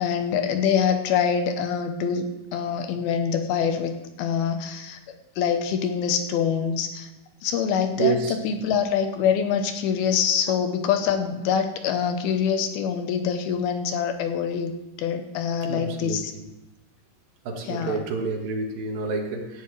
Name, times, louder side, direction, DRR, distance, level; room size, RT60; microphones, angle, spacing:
voice 1, 0.0-2.2 2.5-5.0 5.4-7.1 7.4-8.2 8.4-16.3 17.7-18.0, left 7 dB, 80° left, 7 dB, 2.8 m, -25 dB
voice 2, 8.0-8.4 15.7-16.2 17.5-19.6, right 4 dB, 70° right, 2 dB, 3.2 m, -28 dB
17.5 x 12.5 x 3.3 m, 0.98 s
omnidirectional pair, 4.4 m